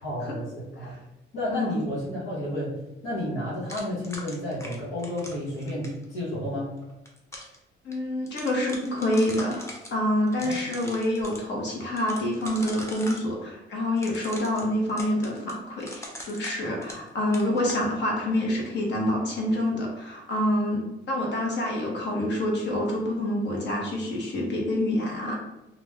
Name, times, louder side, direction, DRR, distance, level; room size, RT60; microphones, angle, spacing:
voice 1, 0.0-0.9 1.3-2.7 3.0-6.7 10.4-10.5, left 1 dB, 85° left, -7 dB, 1.2 m, -31 dB
sound 1, 3.7-6.0 6.8-7.6 7.9-8.0 8.3-9.9 10.3-11.4 12.0-13.3 14.0-17.1 17.3-17.8, left 1 dB, 15° left, 0.7 m, -41 dB
voice 2, 7.8-9.6 9.9-25.4, left 1 dB, 60° left, -1 dB, 1.0 m, -27 dB
2.5 x 2.3 x 3.3 m, 0.93 s
cardioid pair, 90°, 20 cm